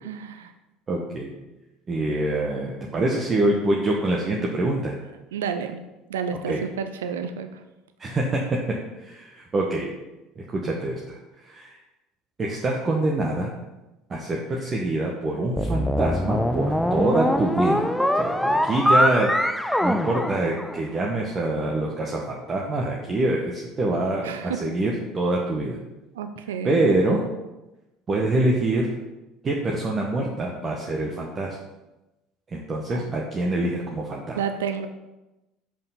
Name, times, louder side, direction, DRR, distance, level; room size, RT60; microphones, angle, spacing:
voice 1, 0.0-0.5 5.3-5.8 6.1-7.6 24.2-24.6 26.1-27.0 32.9-33.0 34.3-34.9, right 7 dB, 80° right, 8 dB, 0.4 m, -30 dB
voice 2, 0.9-1.3 1.9-4.9 6.5-6.6 8.0-8.4 9.0-9.9 10.4-11.2 11.4-11.7 12.4-13.5 14.1-17.9 18.1-19.3 19.8-25.8 26.6-27.2 28.1-28.9 29.4-31.6 32.5-34.4, right 2 dB, 30° right, -2 dB, 1.1 m, -25 dB
sound 1, 15.6-21.0, left 1 dB, 5° left, 0.4 m, -23 dB
5.4 x 4.5 x 5.7 m, 1.0 s
hypercardioid pair, 70°, 0 cm